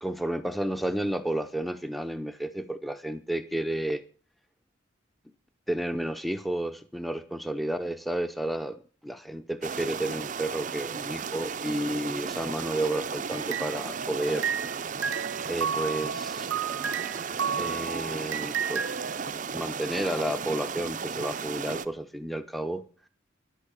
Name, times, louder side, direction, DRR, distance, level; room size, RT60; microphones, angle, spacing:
voice 1, 0.0-4.0 5.7-14.5 15.5-16.5 17.6-18.8 19.5-22.8, right 1 dB, ahead, 11 dB, 0.6 m, -31 dB
sound 1, 9.6-21.9, right 6 dB, 40° right, 0.5 m, -35 dB
sound 2, 13.3-14.8 15.0-19.3, right 7 dB, 75° right, 0.7 m, -32 dB
11.0 x 8.5 x 6.9 m, 0.38 s
head